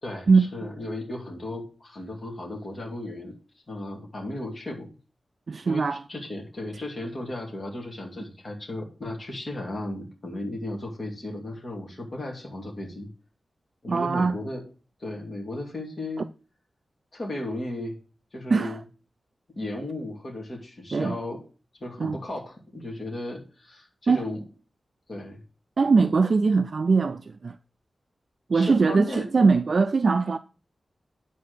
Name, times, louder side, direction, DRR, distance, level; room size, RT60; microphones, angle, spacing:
voice 1, 0.0-3.3 3.7-4.9 5.6-13.1 13.8-14.6 15.0-16.3 17.1-18.0 18.3-18.8 19.6-21.4 21.8-24.4 25.1-25.4 28.5-29.2, left 1 dB, 40° left, 2.4 m, -35 dB
voice 2, 5.5-6.0 13.9-14.4 18.5-18.8 20.9-21.2 22.0-22.2 24.1-24.2 25.8-27.6 28.5-30.4, right 4 dB, 50° right, 0.4 m, -21 dB
9.9 x 4.1 x 6.7 m
wide cardioid pair, 135°, 0 cm